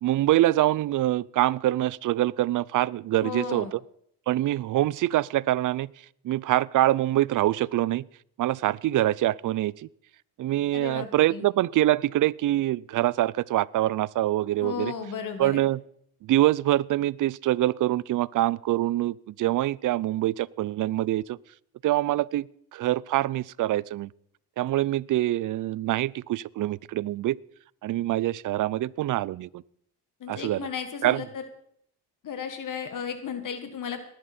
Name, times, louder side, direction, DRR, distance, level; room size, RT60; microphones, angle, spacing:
voice 1, 0.0-3.7 4.3-5.9 6.2-8.0 8.4-9.9 10.4-14.9 15.4-15.8 16.2-21.4 21.8-22.5 22.7-24.1 24.6-27.4 27.8-29.6 30.3-30.7 31.0-31.2, right 15 dB, 55° right, 0.5 m, -25 dB
voice 2, 3.2-3.7 10.7-11.5 14.6-15.7 30.2-31.4 32.2-34.0, left 6 dB, 55° left, 1.7 m, -34 dB
19.5 x 11.5 x 4.3 m
cardioid pair, 85°, 38 cm